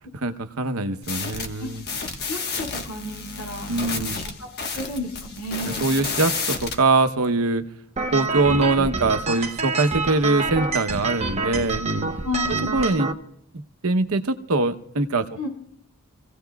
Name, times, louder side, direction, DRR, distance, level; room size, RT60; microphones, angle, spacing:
voice 1, 0.1-1.8 3.7-4.2 5.6-7.6 8.1-12.1 12.5-13.1 13.8-15.3, right 3 dB, 75° right, 0.9 m, -23 dB
sound 1, 1.0-6.8, left 4 dB, 45° left, 1.3 m, -31 dB
voice 2, 2.2-4.5 4.7-5.9 12.2-12.8 15.4-15.5, left 2 dB, 75° left, 8.0 m, -32 dB
sound 2, 8.0-13.1, right 3 dB, 30° right, 0.9 m, -27 dB
27.5 x 16.5 x 2.3 m
head